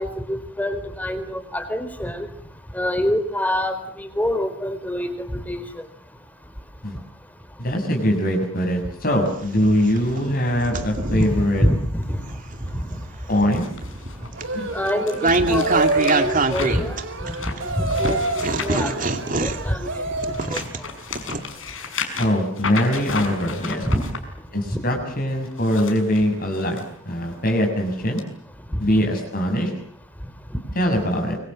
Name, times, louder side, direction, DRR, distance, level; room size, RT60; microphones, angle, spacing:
voice 1, 0.0-2.3 2.7-5.8 11.1-12.2 12.7-12.9 14.7-17.0 17.2-18.9 19.4-20.0 20.5-20.6 23.9-24.0, equal, 10° left, 10 dB, 4.1 m, -26 dB
voice 2, 7.6-11.6 13.3-13.7 14.5-14.7 22.2-23.9 24.5-28.2 28.8-29.7 30.8-31.4, equal, 45° left, 3 dB, 6.9 m, -22 dB
sound 1, 9.3-11.4 12.0-17.6 18.0-21.4, right 2 dB, 40° right, 2.5 m, -25 dB
sound 2, 13.5-19.7 20.1-24.2 25.4-26.8 27.3-27.5 28.2-28.3, left 4 dB, 75° left, 6.0 m, -34 dB
sound 3, 14.4-20.5, right 2 dB, 70° right, 3.6 m, -27 dB
25.5 x 24.5 x 7.7 m, 0.63 s
head